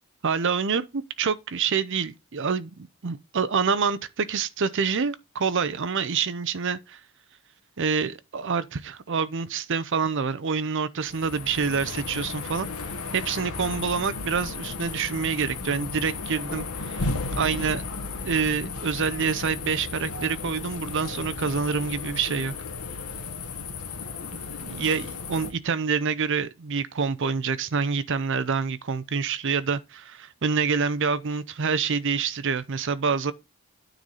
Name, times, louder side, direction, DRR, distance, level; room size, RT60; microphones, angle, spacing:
voice 1, 0.2-7.0 7.8-12.7 13.1-17.1 17.4-17.8 18.2-22.5 24.6-33.3, right 5 dB, 55° right, 0.6 m, -27 dB
sound 1, 11.0-25.5, left 4 dB, 85° left, 1.2 m, -34 dB
9.2 x 3.9 x 5.5 m
head